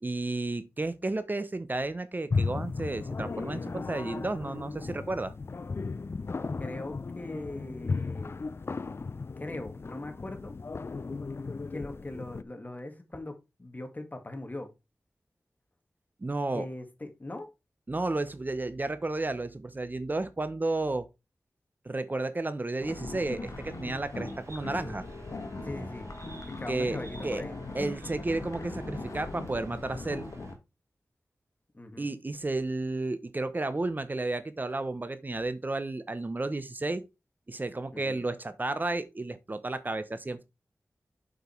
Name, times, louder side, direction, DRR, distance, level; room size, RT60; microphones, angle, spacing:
voice 1, 0.0-5.3 16.2-16.7 17.9-21.1 21.8-25.0 26.7-27.4 27.7-30.3 32.0-37.0 37.5-40.4, right 2 dB, 35° right, 1.0 m, -32 dB
sound 1, 2.3-12.4, left 4 dB, 55° left, 0.5 m, -35 dB
voice 2, 6.6-8.4 9.4-10.6 11.7-14.7 16.5-17.5 25.6-26.1 26.4-27.6 31.7-32.2 37.9-38.2, left 2 dB, 35° left, 2.1 m, -40 dB
sound 2, 22.8-30.5, left 2 dB, 75° left, 1.7 m, -40 dB
sound 3, 23.4-30.5, right 2 dB, 75° right, 4.2 m, -50 dB
8.1 x 5.4 x 4.5 m
cardioid pair, 55°, 5 cm